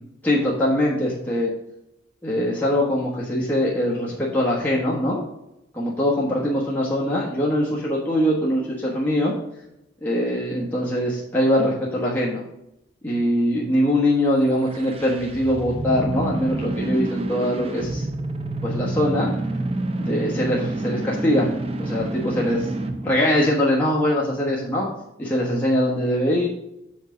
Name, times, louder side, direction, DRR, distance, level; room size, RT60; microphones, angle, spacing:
voice 1, 0.2-1.5 2.2-5.2 5.7-9.3 10.0-12.4 13.0-18.1 18.6-19.3 20.0-21.5 21.8-22.7 23.0-24.8 25.2-26.5, equal, 10° left, -6 dB, 1.2 m, -22 dB
sound 1, 14.5-23.2, right 2 dB, 30° right, 0.6 m, -28 dB
7.4 x 5.4 x 3.8 m, 0.87 s
head